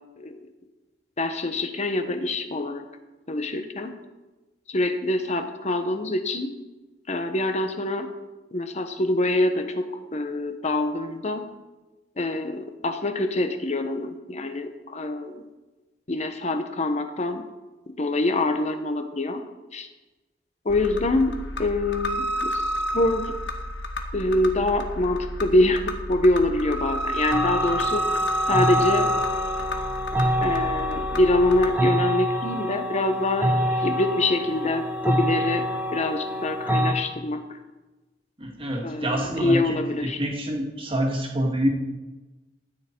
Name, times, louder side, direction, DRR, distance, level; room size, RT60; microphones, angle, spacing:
voice 1, 1.2-2.9 3.3-3.9 4.7-6.6 7.1-8.1 8.5-11.5 12.2-15.5 16.1-17.5 18.0-19.4 19.7-19.9 20.6-22.6 22.9-23.3 24.1-28.1 28.5-29.1 30.4-37.6 38.8-40.2, left 2 dB, 40° left, 8 dB, 1.1 m, -25 dB
sound 1, 20.7-31.7, equal, 80° left, 1.3 m, -30 dB
sound 2, 27.3-36.9, equal, 10° right, 1.5 m, -26 dB
voice 2, 38.4-41.7, right 1 dB, 30° right, 0 dB, 2.1 m, -27 dB
14.0 x 9.4 x 4.5 m, 1.1 s
head